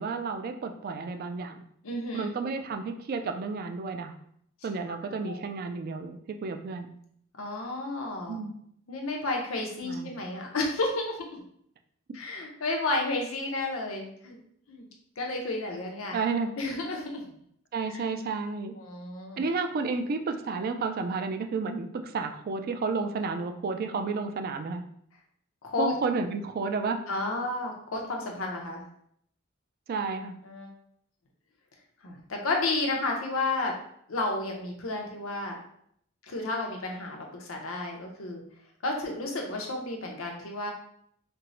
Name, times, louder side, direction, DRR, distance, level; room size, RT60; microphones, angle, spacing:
voice 1, 0.0-1.5 2.1-4.1 4.6-6.9 8.3-8.5 9.8-10.1 16.1-16.5 17.7-18.7 19.4-24.8 25.8-27.0 29.9-30.4, right 4 dB, 45° right, 6 dB, 0.3 m, -31 dB
voice 2, 1.8-2.3 4.9-5.0 5.3-5.4 7.4-8.4 8.9-11.4 12.1-14.4 14.7-14.9 15.2-16.2 16.6-17.2 18.8-19.4 25.6-25.9 27.1-28.8 30.4-30.7 32.0-33.7 34.1-35.6 36.2-38.4 38.8-40.7, left 2 dB, 90° left, 1 dB, 0.7 m, -32 dB
4.4 x 2.0 x 2.6 m, 0.68 s
head